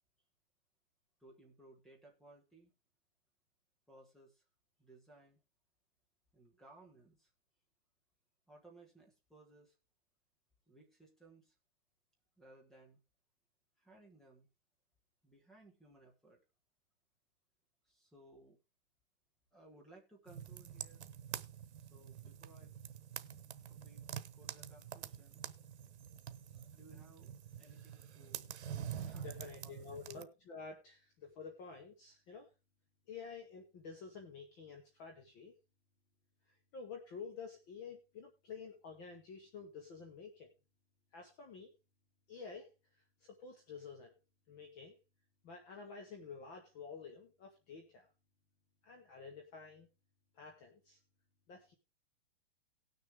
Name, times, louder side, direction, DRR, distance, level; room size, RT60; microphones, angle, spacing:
voice 1, 1.2-2.7 3.9-4.4 4.8-5.4 6.3-7.3 8.5-9.7 10.7-11.5 12.4-13.0 13.8-14.5 15.2-16.4 17.8-18.6 19.5-21.0 21.8-22.8 23.7-24.1 24.3-25.4 26.5-27.3 27.6-28.5 29.1-30.3, right 2 dB, ahead, 0 dB, 1.2 m, -61 dB
sound 1, 20.3-30.2, right 9 dB, 90° right, 1.1 m, -47 dB
voice 2, 29.0-32.5 33.1-35.5 36.7-40.5 41.1-41.7 42.3-42.7 43.2-44.2 44.5-45.0 45.4-48.1 48.8-49.9 50.3-51.0 51.5-51.7, left 5 dB, 20° left, 3 dB, 0.9 m, -50 dB
18.5 x 6.6 x 3.5 m, 0.28 s
hypercardioid pair, 175°, 33 cm